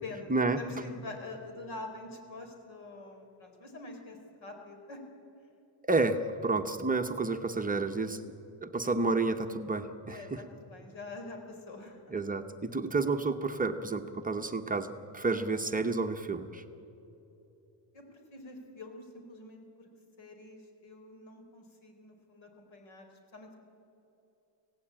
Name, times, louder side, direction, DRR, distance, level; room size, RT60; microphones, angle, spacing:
voice 1, 0.6-5.0 10.1-12.0 17.9-19.9 20.2-23.6, left 2 dB, 80° left, 4 dB, 4.3 m, -46 dB
voice 2, 5.9-8.2 8.6-10.4 12.1-16.6, right 3 dB, 20° right, 5 dB, 0.8 m, -30 dB
25.5 x 17.0 x 8.8 m, 3.0 s
cardioid pair, 165°, 46 cm